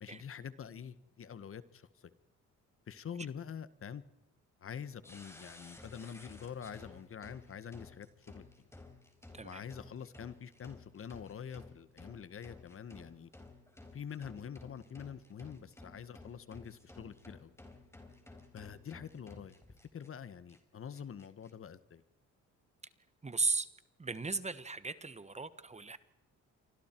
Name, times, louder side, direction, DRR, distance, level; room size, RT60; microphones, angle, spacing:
voice 1, 0.0-2.1 2.9-4.0 4.6-8.7 9.4-13.3 13.9-17.5 18.5-19.6 19.9-22.0, left 7 dB, 45° left, 15 dB, 1.3 m, -46 dB
sound 1, 5.0-20.1 20.5-20.6 20.9-21.5, left 2 dB, 10° left, 4.1 m, -55 dB
voice 2, 23.2-23.7 24.0-26.0, right 3 dB, 20° right, 14 dB, 1.3 m, -36 dB
28.0 x 25.0 x 4.5 m, 0.97 s
cardioid pair, 90°, 30 cm